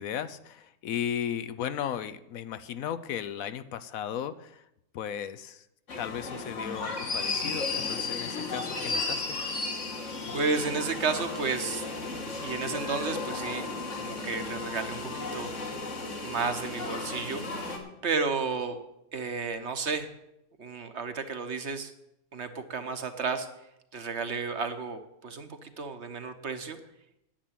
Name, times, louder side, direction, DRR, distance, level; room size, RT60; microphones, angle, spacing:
voice 1, 0.0-4.7 4.9-5.7 6.0-9.4, left 9 dB, 70° left, 13 dB, 1.0 m, -35 dB
sound 1, 5.9-17.8, left 3 dB, 55° left, 2.0 m, -34 dB
voice 2, 10.3-11.9 12.4-13.7 14.0-15.5 16.2-17.4 18.0-18.8 19.1-20.1 20.6-21.9 22.3-23.5 23.9-26.8, right 4 dB, 50° right, 9 dB, 1.1 m, -32 dB
10.0 x 7.4 x 8.8 m, 0.83 s
omnidirectional pair, 1.6 m